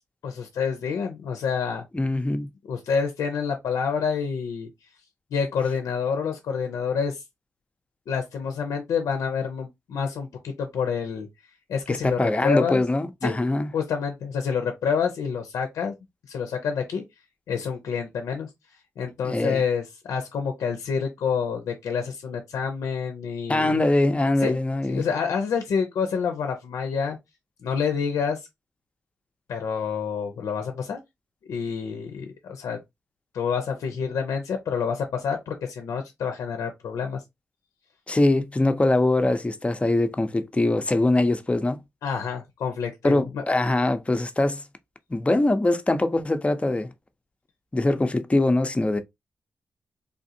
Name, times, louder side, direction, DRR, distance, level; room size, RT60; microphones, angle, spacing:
voice 1, 0.2-1.8 2.7-4.7 5.3-7.2 8.1-11.3 11.7-12.8 13.2-13.4 13.7-15.9 16.3-17.0 17.5-18.5 19.0-23.8 24.4-24.6 24.9-27.2 27.6-28.4 29.5-31.0 31.5-32.8 33.3-37.2 42.0-43.4, left 6 dB, 85° left, 0.5 m, -28 dB
voice 2, 1.9-2.5 11.9-13.7 19.2-19.6 23.5-25.0 38.1-41.8 43.0-44.6 45.1-46.9 47.7-49.0, left 2 dB, 20° left, 0.6 m, -22 dB
3.5 x 2.5 x 2.7 m
cardioid pair, 50°, 5 cm